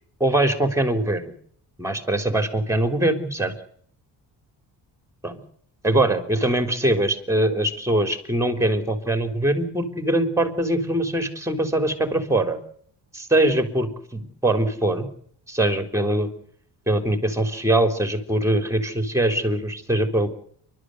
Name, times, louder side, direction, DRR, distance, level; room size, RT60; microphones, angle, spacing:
voice 1, 0.2-1.2 1.8-3.5 5.2-5.4 5.8-12.6 13.1-15.1 15.5-16.3 16.9-20.3, right 1 dB, 5° right, 9 dB, 3.8 m, -22 dB
29.5 x 13.0 x 8.1 m, 0.63 s
cardioid pair, 125°, 39 cm